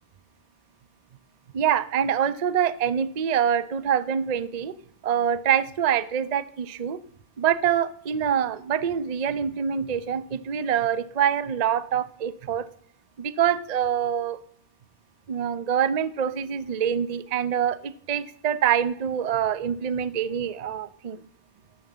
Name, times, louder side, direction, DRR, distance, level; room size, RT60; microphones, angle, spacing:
voice 1, 1.5-4.7 5.0-7.0 7.4-12.6 13.2-14.4 15.3-21.2, right 8 dB, 45° right, 14 dB, 0.6 m, -25 dB
10.5 x 10.5 x 7.3 m, 0.66 s
omnidirectional pair, 1.3 m